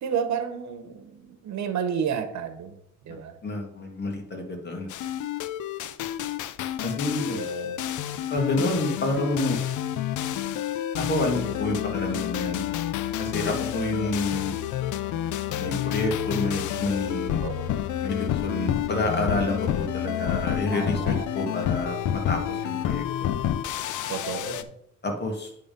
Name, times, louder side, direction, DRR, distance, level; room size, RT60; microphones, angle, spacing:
voice 1, 0.0-2.8 3.0-3.4 7.3-7.8 17.4-17.8 20.7-21.2 24.1-24.7, right 7 dB, 65° right, 8 dB, 1.2 m, -31 dB
voice 2, 3.4-4.9 6.8-7.4 8.3-9.6 11.0-12.7 13.2-14.6 15.5-17.4 18.0-23.3 25.0-25.5, left 2 dB, 35° left, 2 dB, 2.1 m, -29 dB
sound 1, 4.9-24.6, left 11 dB, 80° left, 0.6 m, -29 dB
9.7 x 3.7 x 5.3 m, 0.74 s
cardioid pair, 90°, 30 cm